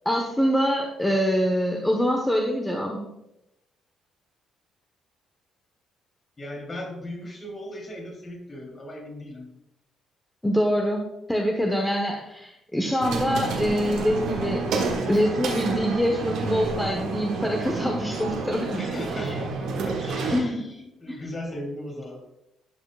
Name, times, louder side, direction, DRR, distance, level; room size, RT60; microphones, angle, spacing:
voice 1, 0.0-3.1 10.4-14.7 15.1-18.8 19.2-19.3 20.3-20.6 21.1-21.2, equal, 10° left, 1 dB, 1.2 m, -25 dB
voice 2, 6.4-9.5 18.7-22.2, left 1 dB, 35° left, -1 dB, 3.2 m, -37 dB
sound 1, 13.0-20.4, right 4 dB, 60° right, 1.3 m, -29 dB
12.0 x 6.9 x 2.4 m, 0.85 s
figure-of-eight pair, 45°, 0 cm